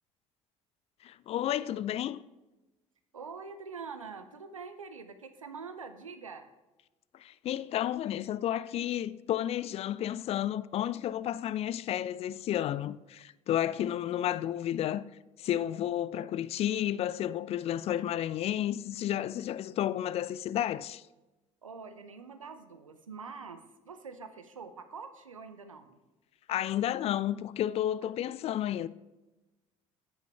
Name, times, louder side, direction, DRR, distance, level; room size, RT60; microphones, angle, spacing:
voice 1, 1.0-2.2 7.2-15.0 15.4-21.0 26.5-28.9, left 11 dB, 40° left, 0.4 m, -32 dB
voice 2, 3.1-6.5 21.6-26.0 28.2-28.3, right 5 dB, 85° right, 0.6 m, -45 dB
9.8 x 8.4 x 3.3 m
figure-of-eight pair, 55°, 17 cm